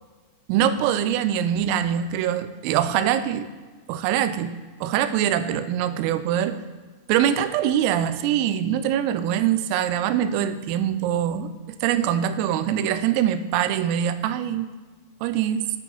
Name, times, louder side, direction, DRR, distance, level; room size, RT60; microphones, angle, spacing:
voice 1, 0.5-3.5 3.9-4.6 4.8-6.6 7.1-11.5 11.8-14.7 15.2-15.7, right 10 dB, 85° right, 11 dB, 3.3 m, -23 dB
17.5 x 6.3 x 4.6 m, 1.4 s
omnidirectional pair, 5.9 m